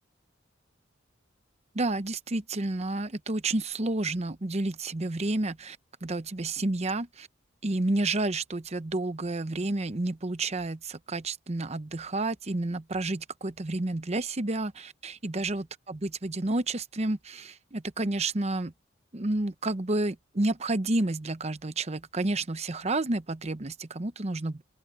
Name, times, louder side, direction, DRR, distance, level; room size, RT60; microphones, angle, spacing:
voice 1, 1.7-7.3 7.6-18.7 19.1-24.6, right 2 dB, 35° right, 0.9 m, -30 dB
open air
head